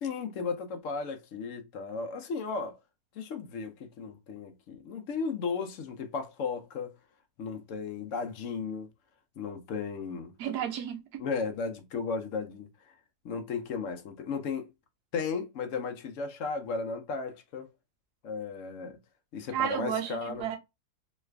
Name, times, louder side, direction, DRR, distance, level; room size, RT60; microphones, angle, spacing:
voice 1, 0.0-2.8 3.1-7.0 7.4-8.9 9.4-10.3 11.2-13.0 13.2-14.7 15.1-17.7 18.2-19.0 19.3-20.5, left 5 dB, 65° left, 0.8 m, -35 dB
voice 2, 10.4-11.2 19.5-20.6, right 9 dB, 85° right, 1.3 m, -32 dB
3.2 x 2.4 x 3.2 m
omnidirectional pair, 1.7 m